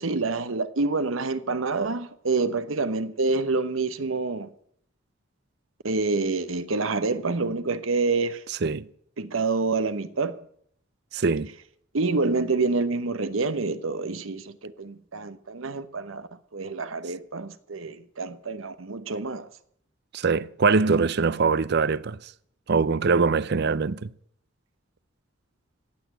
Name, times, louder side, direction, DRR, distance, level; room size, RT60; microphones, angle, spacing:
voice 1, 0.0-4.5 5.8-8.4 9.2-10.4 11.9-19.5, right 3 dB, 80° right, 1.0 m, -27 dB
voice 2, 8.5-8.9 11.1-11.5 20.1-22.3 22.7-24.1, right 4 dB, 55° right, 0.5 m, -23 dB
16.0 x 8.4 x 8.9 m
head